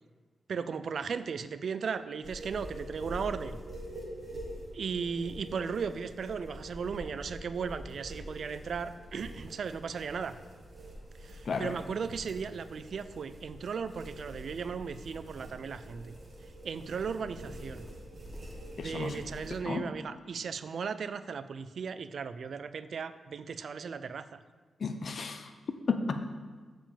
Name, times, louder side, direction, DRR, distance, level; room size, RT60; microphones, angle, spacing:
voice 1, 0.5-3.6 4.7-10.4 11.2-16.1 16.6-17.9 18.8-24.4, right 6 dB, 65° right, 13 dB, 0.4 m, -36 dB
sound 1, 2.2-19.6, right 1 dB, 40° right, 1.9 m, -45 dB
voice 2, 18.8-19.2 19.6-19.9 24.8-25.5 25.9-26.3, left 4 dB, 55° left, 8 dB, 0.7 m, -33 dB
7.4 x 5.0 x 7.0 m, 1.4 s
cardioid pair, 90°, 0 cm